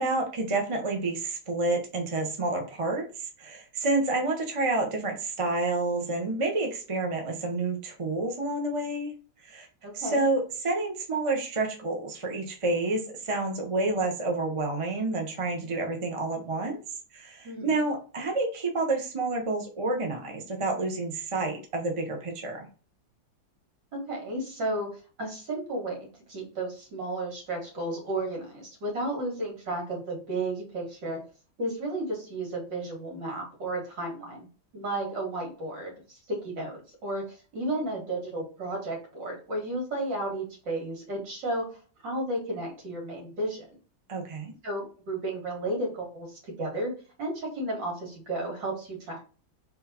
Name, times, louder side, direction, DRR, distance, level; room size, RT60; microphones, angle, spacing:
voice 1, 0.0-3.0 3.4-9.1 9.4-9.7 9.9-16.8 17.1-22.7 44.1-44.5, right 2 dB, 25° right, 2 dB, 0.7 m, -29 dB
voice 2, 9.8-10.2 17.4-17.8 23.9-24.9 25.2-26.0 26.3-31.2 31.6-34.5 34.7-35.9 36.3-41.8 42.0-43.6 44.6-46.9 47.2-49.2, right 1 dB, 65° right, 0 dB, 2.5 m, -33 dB
3.9 x 3.2 x 4.2 m, 0.36 s
omnidirectional pair, 2.1 m